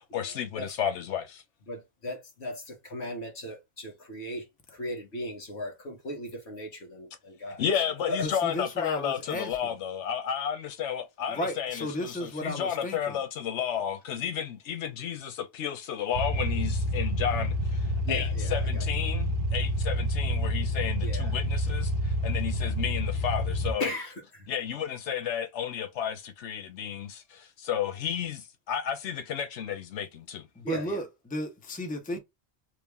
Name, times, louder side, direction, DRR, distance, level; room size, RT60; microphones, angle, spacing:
voice 1, 0.1-1.4 7.6-23.9 24.5-30.5, left 8 dB, 90° left, 1.0 m, -32 dB
voice 2, 1.7-4.4 4.7-7.6 8.1-8.2 18.1-18.8 21.0-21.3 23.8-24.5 30.6-31.0, left 1 dB, 70° left, 1.7 m, -37 dB
voice 3, 8.2-9.7 11.3-13.2 30.5-32.2, left 1 dB, 10° left, 0.6 m, -34 dB
sound 1, 16.1-23.7, equal, 60° right, 0.6 m, -28 dB
3.2 x 2.4 x 3.4 m
omnidirectional pair, 1.1 m